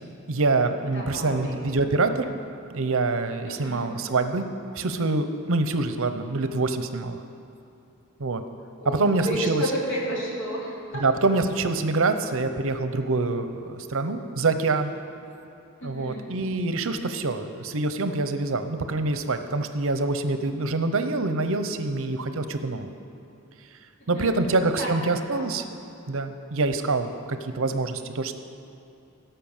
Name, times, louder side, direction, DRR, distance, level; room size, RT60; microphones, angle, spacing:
voice 1, 0.3-2.3 2.7-4.5 4.8-7.2 8.2-8.4 8.9-9.6 11.0-14.9 15.8-22.9 24.1-25.6 26.1-28.3, right 3 dB, 70° right, 9 dB, 0.8 m, -25 dB
voice 2, 0.9-1.6 3.4-3.9 8.8-11.0 15.8-16.3 24.1-25.6, equal, 65° left, -4 dB, 3.0 m, -32 dB
17.0 x 5.7 x 7.2 m, 2.7 s
head